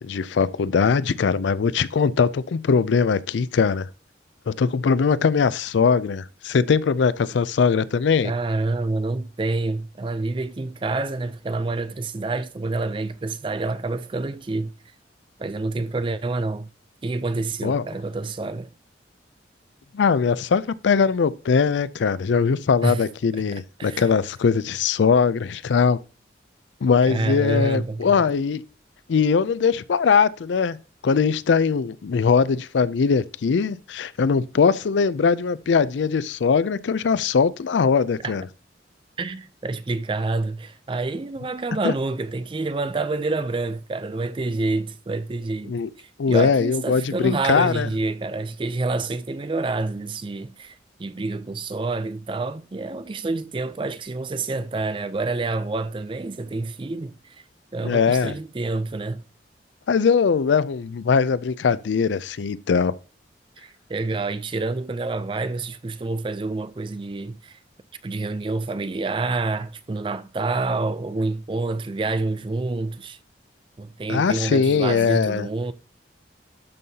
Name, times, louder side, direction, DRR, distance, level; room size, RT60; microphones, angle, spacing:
voice 1, 0.0-3.9 4.5-8.3 17.6-17.8 19.9-26.0 26.8-28.6 29.1-30.8 31.0-38.4 41.8-41.9 45.7-45.9 46.2-47.9 57.8-58.4 59.9-63.0 74.1-75.5, left 5 dB, 80° left, 0.4 m, -21 dB
voice 2, 8.2-14.7 15.4-16.7 17.0-18.7 22.8-23.0 23.5-24.0 27.1-28.3 38.2-38.3 39.2-57.4 57.7-59.2 63.6-67.6 68.0-73.2 73.8-75.7, right 3 dB, 25° right, 0.4 m, -28 dB
12.0 x 5.4 x 2.8 m
head